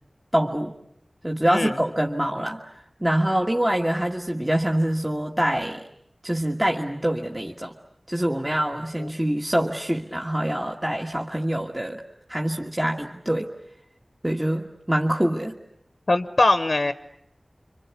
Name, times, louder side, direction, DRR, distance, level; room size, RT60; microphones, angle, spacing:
voice 1, 0.3-0.7 1.2-2.7 3.0-5.8 6.2-7.7 8.1-12.0 12.3-13.5 14.2-15.5, right 1 dB, 15° right, 1 dB, 1.6 m, -25 dB
voice 2, 1.5-1.8 9.0-9.1 16.1-16.9, left 2 dB, 60° left, 10 dB, 1.0 m, -21 dB
27.0 x 25.5 x 8.4 m, 0.73 s
wide cardioid pair, 65°, 0 cm